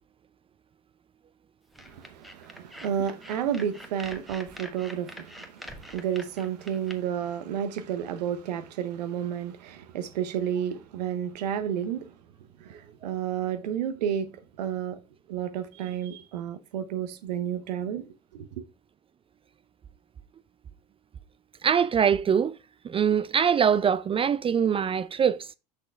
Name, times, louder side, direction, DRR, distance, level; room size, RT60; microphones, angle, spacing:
sound 1, 1.7-7.0, equal, ahead, 1.2 m, -44 dB
voice 1, 1.9-12.1 12.6-14.3 14.6-14.9 15.3-18.5, right 9 dB, 80° right, 0.9 m, -31 dB
voice 2, 21.6-22.6 22.8-25.5, right 7 dB, 25° right, 0.4 m, -23 dB
6.5 x 6.1 x 3.4 m
hypercardioid pair, 75°, 21 cm